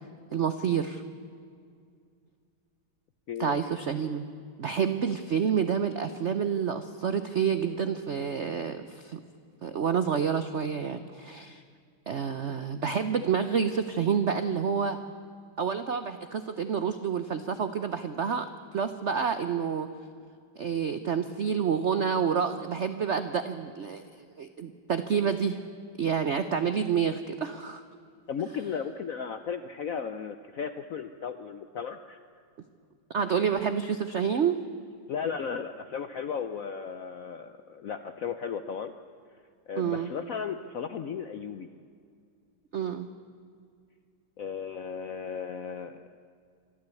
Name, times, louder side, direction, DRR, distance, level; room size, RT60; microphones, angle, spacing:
voice 1, 0.3-1.0 3.4-4.3 4.6-9.2 9.6-11.6 12.1-15.0 15.6-19.9 20.6-24.0 24.4-25.6 26.0-27.8 33.1-34.6 39.8-40.1 42.7-43.1, right 7 dB, 70° right, 10 dB, 0.6 m, -28 dB
voice 2, 3.3-3.6 28.3-32.2 35.1-38.9 39.7-41.7 44.4-46.2, left 6 dB, 70° left, 9 dB, 0.8 m, -35 dB
25.0 x 13.0 x 8.3 m, 2.2 s
omnidirectional pair, 2.2 m